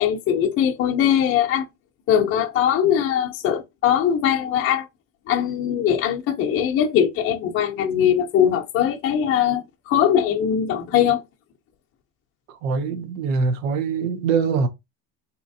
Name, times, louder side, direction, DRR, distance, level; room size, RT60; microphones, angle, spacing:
voice 1, 0.0-1.7 2.1-4.9 5.3-11.2, left 9 dB, 30° left, 0.6 m, -21 dB
voice 2, 12.5-14.7, right 5 dB, 85° right, 1.2 m, -23 dB
4.1 x 3.0 x 2.7 m
cardioid pair, 150°, 41 cm